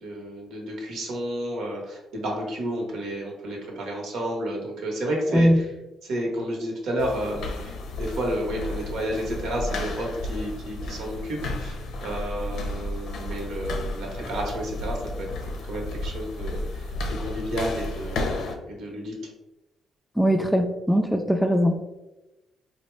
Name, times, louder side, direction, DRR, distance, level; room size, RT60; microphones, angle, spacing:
voice 1, 0.0-5.7 6.0-7.5 8.0-15.3 15.7-18.3 18.7-19.1, equal, 75° right, 0 dB, 1.0 m, -31 dB
sound 1, 7.0-18.5, left 1 dB, 80° left, 0.6 m, -33 dB
voice 2, 20.2-21.8, equal, ahead, 5 dB, 0.3 m, -20 dB
3.9 x 2.1 x 3.2 m, 0.99 s
cardioid pair, 90°, 0 cm